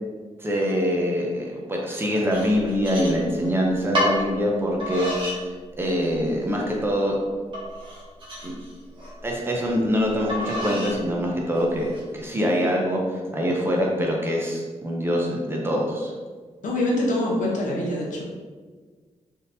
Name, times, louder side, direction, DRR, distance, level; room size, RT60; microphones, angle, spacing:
voice 1, 0.4-5.1 5.8-7.2 8.4-8.5 9.2-16.1, equal, 20° right, -2 dB, 0.5 m, -24 dB
sound 1, 2.3-3.5 3.9-4.2 4.8-5.4 5.8-6.3 6.8-6.9 7.5-9.1 10.3-11.0 11.5-12.0, equal, 40° right, 1.0 m, -30 dB
voice 2, 16.6-18.2, left 1 dB, 80° left, -3 dB, 0.8 m, -24 dB
3.5 x 2.7 x 2.6 m, 1.5 s
wide cardioid pair, 150°, 13 cm